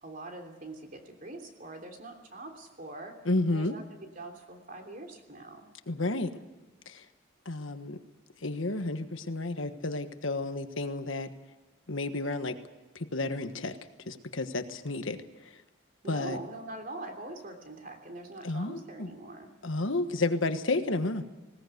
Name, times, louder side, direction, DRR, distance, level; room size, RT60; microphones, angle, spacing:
voice 1, 0.0-3.1 3.5-5.7 16.0-19.5, right 2 dB, 45° right, 4 dB, 3.1 m, -43 dB
voice 2, 3.2-3.8 5.9-6.3 6.9-7.0 7.4-8.0 8.4-11.3 11.9-12.6 12.9-13.8 14.1-15.2 15.4-15.5 16.1-16.4 18.4-19.1 19.6-21.2, left 2 dB, 75° left, 8 dB, 1.4 m, -31 dB
20.0 x 18.0 x 8.1 m, 1.2 s
head